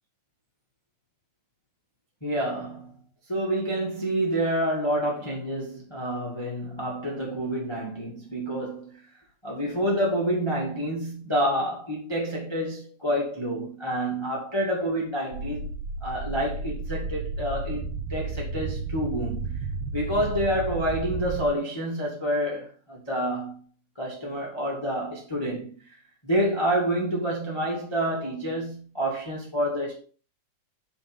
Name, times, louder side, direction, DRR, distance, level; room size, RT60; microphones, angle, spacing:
voice 1, 2.2-2.9 3.3-9.0 9.4-15.7 16.0-19.5 19.9-23.6 24.0-25.7 26.2-30.0, equal, 10° left, 1.9 m, -28 dB
sound 1, 15.3-21.5, right 4 dB, 75° right, 1.2 m, -32 dB
7.5 x 5.1 x 5.3 m
omnidirectional pair, 3.5 m